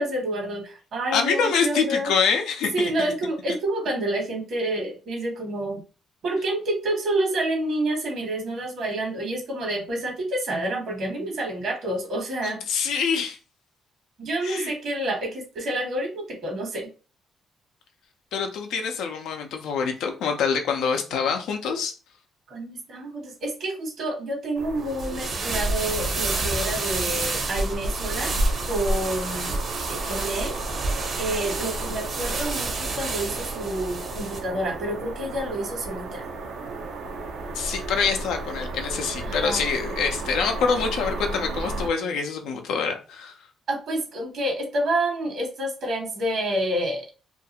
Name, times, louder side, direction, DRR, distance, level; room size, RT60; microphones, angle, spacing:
voice 1, 0.0-2.1 2.7-5.8 6.2-12.6 14.2-16.9 22.5-28.3 28.7-29.5 29.9-30.5 31.2-36.3 39.2-39.6 43.7-47.0, right 1 dB, 65° right, 1.2 m, -28 dB
voice 2, 1.1-2.9 12.4-13.4 14.4-14.7 18.3-21.9 37.5-43.4, left 5 dB, 85° left, 0.5 m, -25 dB
sound 1, 24.6-41.9, right 3 dB, 85° right, 0.6 m, -34 dB
sound 2, 24.9-34.4, right 2 dB, 50° right, 0.8 m, -29 dB
2.5 x 2.3 x 2.8 m
cardioid pair, 90°, 0 cm